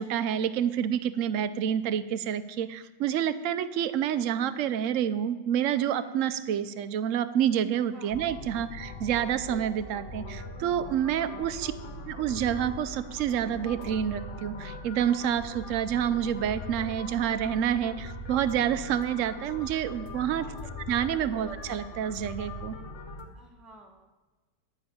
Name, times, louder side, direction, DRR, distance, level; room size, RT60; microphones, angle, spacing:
voice 1, 0.0-11.7 12.1-20.5 20.9-22.8, right 9 dB, 60° right, 12 dB, 0.9 m, -28 dB
sound 1, 8.1-23.3, left 1 dB, 45° left, 1.6 m, -41 dB
voice 2, 23.3-24.1, right 1 dB, ahead, 0 dB, 0.9 m, -53 dB
11.5 x 6.1 x 8.6 m, 1.2 s
omnidirectional pair, 1.8 m